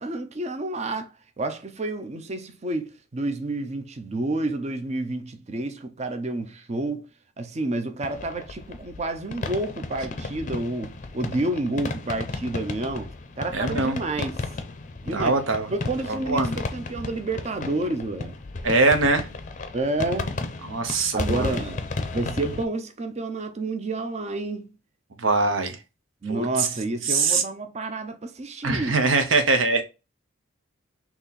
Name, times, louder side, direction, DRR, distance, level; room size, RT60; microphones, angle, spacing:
voice 1, 0.0-7.1 7.4-14.3 15.0-15.4 15.7-18.4 19.7-20.3 21.1-21.9 22.1-24.7 26.2-29.0, right 2 dB, 35° right, 0.6 m, -29 dB
sound 1, 8.0-22.6, left 3 dB, 40° left, 0.5 m, -33 dB
voice 2, 13.5-14.0 15.1-15.7 16.1-16.5 18.6-19.3 20.6-21.6 25.2-25.8 26.3-26.7 27.0-27.4 28.6-29.8, right 3 dB, 80° right, 0.8 m, -22 dB
4.1 x 2.9 x 4.1 m
head